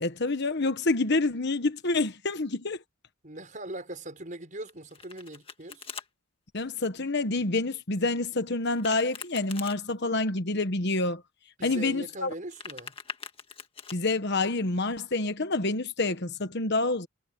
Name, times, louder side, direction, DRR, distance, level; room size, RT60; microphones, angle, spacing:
voice 1, 0.0-2.8 6.5-11.2 11.6-12.3 13.9-17.1, left 2 dB, 55° left, 1.3 m, -27 dB
voice 2, 3.2-5.8 11.6-12.9, right 1 dB, 35° right, 6.4 m, -40 dB
Domestic sounds home sounds, 4.7-6.1 8.6-9.8 12.3-14.0, left 6 dB, 25° left, 1.8 m, -43 dB
head